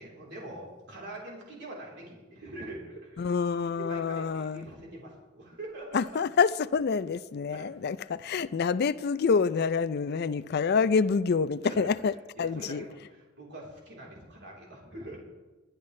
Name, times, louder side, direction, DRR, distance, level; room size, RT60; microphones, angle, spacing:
voice 1, 0.0-3.3 3.8-6.2 7.2-7.7 11.6-11.9 12.4-15.2, right 1 dB, 60° right, 3.8 m, -43 dB
voice 2, 3.2-4.6 5.9-12.1 12.4-12.8, left 5 dB, 55° left, 0.4 m, -27 dB
22.0 x 10.5 x 3.3 m
head